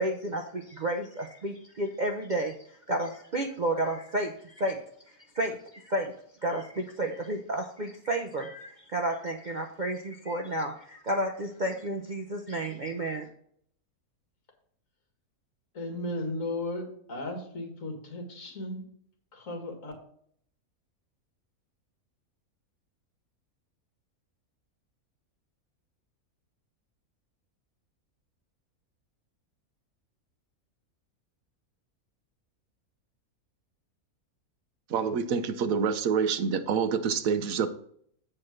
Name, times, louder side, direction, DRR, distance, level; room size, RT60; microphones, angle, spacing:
voice 1, 0.0-4.8 5.1-6.1 6.4-13.3, right 1 dB, 40° right, 3 dB, 0.7 m, -31 dB
voice 2, 15.7-18.8 19.3-19.9, left 1 dB, 60° left, 3 dB, 2.2 m, -35 dB
voice 3, 34.9-37.7, right 6 dB, 70° right, 9 dB, 1.2 m, -27 dB
7.8 x 4.5 x 6.4 m, 0.62 s
omnidirectional pair, 1.6 m